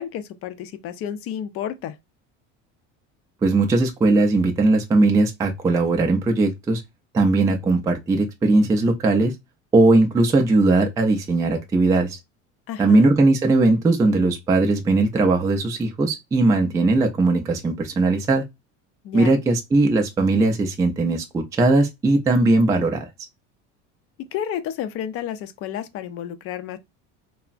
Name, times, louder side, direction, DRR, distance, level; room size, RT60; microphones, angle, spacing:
voice 1, 0.0-2.0 12.7-13.1 19.0-19.3 24.3-26.8, left 9 dB, 50° left, 0.5 m, -31 dB
voice 2, 3.4-6.8 7.1-9.3 9.7-12.2 12.8-18.4 19.1-23.0, right 2 dB, 10° right, 0.3 m, -19 dB
3.3 x 2.0 x 2.4 m
cardioid pair, 155°, 30 cm